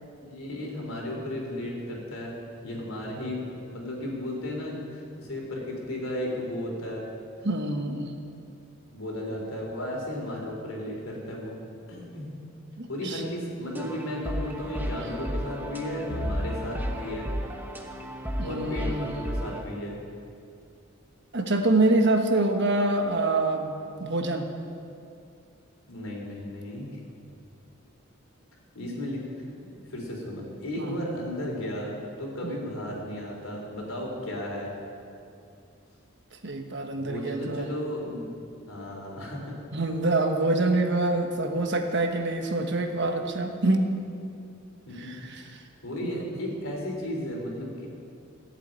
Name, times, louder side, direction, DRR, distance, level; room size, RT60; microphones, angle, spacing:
voice 1, 0.2-2.3 2.6-3.4 3.7-7.0 8.9-11.6 11.9-12.3 12.9-17.3 18.4-20.0 25.9-27.0 28.7-29.2 29.8-34.7 37.0-38.4 38.7-39.5 44.9-45.5 45.8-47.9, left 1 dB, 85° left, -1 dB, 3.6 m, -34 dB
voice 2, 7.4-8.1 12.8-13.2 18.4-19.2 21.3-24.4 30.8-31.0 32.4-32.6 36.4-37.7 39.7-43.9 45.0-45.4 46.0-46.2, right 2 dB, 60° right, 4 dB, 1.3 m, -26 dB
sound 1, 13.7-19.6, equal, 10° right, 1.0 m, -33 dB
sound 2, 16.1-18.7, left 1 dB, 60° left, 1.0 m, -39 dB
14.5 x 7.6 x 9.0 m, 2.5 s
head